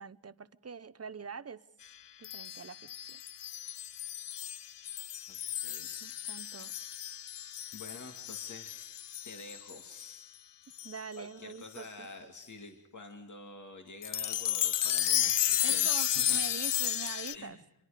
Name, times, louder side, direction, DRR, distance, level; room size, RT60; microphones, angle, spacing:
voice 1, 0.0-1.6 2.2-3.2 6.0-6.7 10.8-12.1 15.6-17.6, right 5 dB, 35° right, 16 dB, 0.9 m, -44 dB
sound 1, 2.2-10.2 10.8-11.0 11.8-11.9 14.0-17.3, left 10 dB, 85° left, 0.7 m, -33 dB
voice 2, 7.7-8.9 9.2-10.3 11.1-15.9 16.3-16.4 17.3-17.6, left 3 dB, 45° left, 4 dB, 2.4 m, -48 dB
26.0 x 22.5 x 5.1 m, 0.90 s
wide cardioid pair, 95°, 42 cm